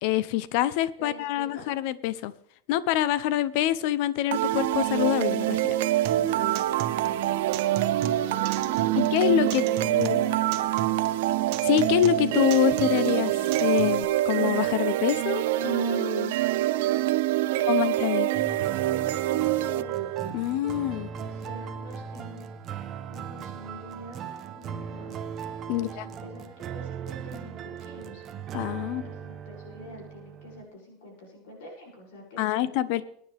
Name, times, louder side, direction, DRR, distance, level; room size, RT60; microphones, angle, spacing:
voice 1, 0.0-2.3 2.7-5.8 8.9-10.2 11.6-16.3 17.7-18.3 20.3-21.1 25.7-26.0 28.5-29.0 32.4-33.0, left 13 dB, 55° left, 17 dB, 0.7 m, -26 dB
voice 2, 1.0-1.6 7.9-11.1 17.5-18.5 18.8-20.1 21.1-22.5 23.1-25.3 25.6-28.6 28.9-33.0, equal, 75° left, -2 dB, 7.0 m, -46 dB
sound 1, 4.3-20.3, right 14 dB, 75° right, 0.6 m, -25 dB
Acoustic guitar, 6.0-14.0, right 10 dB, 50° right, 1.3 m, -37 dB
sound 2, 18.3-30.6, right 7 dB, 25° right, 1.0 m, -38 dB
24.0 x 9.9 x 3.5 m, 0.69 s
supercardioid pair, 175°, 0 cm